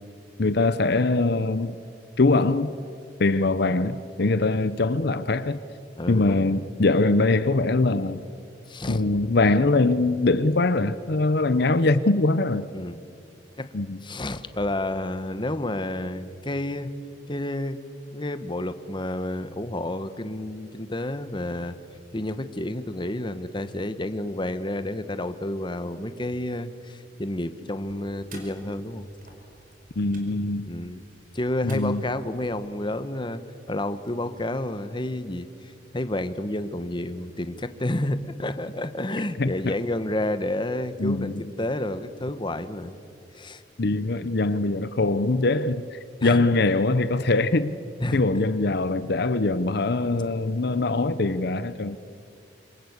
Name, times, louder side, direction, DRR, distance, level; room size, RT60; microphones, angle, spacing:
voice 1, 0.4-1.8 2.2-2.7 3.2-5.6 6.1-8.2 8.9-12.7 13.7-14.0 30.0-30.7 31.6-32.0 39.4-39.7 41.0-41.4 43.8-47.7 48.1-52.0, left 2 dB, 60° left, 0.8 m, -22 dB
voice 2, 6.0-6.4 8.7-9.0 12.7-13.0 13.6-13.7 14.0-17.0 17.3-17.8 18.1-21.8 22.1-29.1 30.7-31.0 31.3-33.4 33.7-42.9 43.3-43.6 46.2-46.4 48.0-48.4, left 1 dB, 25° left, 1.2 m, -30 dB
sound 1, 27.9-32.7, right 2 dB, 50° right, 5.2 m, -50 dB
26.5 x 26.0 x 8.2 m
head